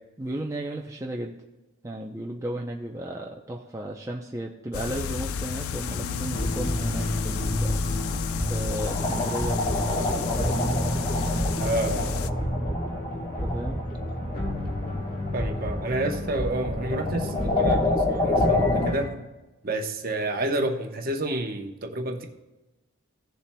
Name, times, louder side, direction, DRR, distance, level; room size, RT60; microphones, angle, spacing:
voice 1, 0.2-1.3 1.8-7.8 8.5-10.7 13.4-13.8, right 1 dB, 15° right, -1 dB, 0.5 m, -34 dB
sound 1, 4.7-12.3, left 6 dB, 90° left, 0.4 m, -32 dB
sound 2, 5.8-19.1, equal, 45° left, 1.8 m, -31 dB
sound 3, 6.3-18.9, left 2 dB, 25° left, 1.2 m, -29 dB
voice 2, 11.6-12.1 15.3-19.1 19.6-22.3, right 2 dB, 45° right, 4 dB, 0.9 m, -29 dB
16.5 x 7.2 x 2.2 m, 1.1 s
head